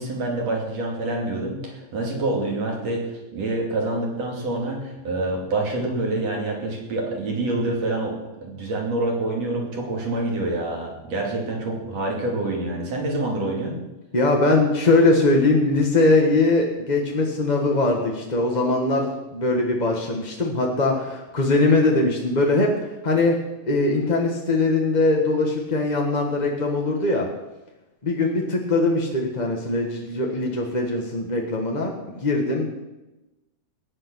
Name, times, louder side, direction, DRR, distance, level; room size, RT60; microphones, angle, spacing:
voice 1, 0.0-8.2 8.4-13.8, right 2 dB, 60° right, 0 dB, 3.8 m, -26 dB
voice 2, 14.1-22.7 23.0-23.4 23.6-27.3 28.0-32.7, left 2 dB, 30° left, 1 dB, 0.7 m, -21 dB
19.0 x 8.2 x 6.2 m, 1.0 s
omnidirectional pair, 3.4 m